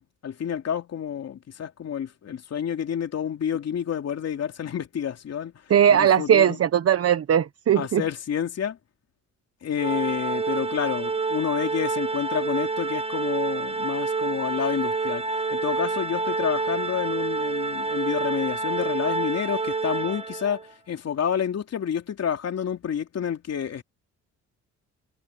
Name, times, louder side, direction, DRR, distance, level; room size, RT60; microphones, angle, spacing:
voice 1, 0.0-5.5 5.9-6.6 7.7-8.8 9.6-23.8, left 8 dB, 55° left, 3.1 m, -29 dB
voice 2, 5.7-8.0, right 9 dB, 50° right, 1.1 m, -19 dB
Organ, 9.8-20.7, right 3 dB, 20° right, 1.5 m, -28 dB
cardioid pair, 90°, 30 cm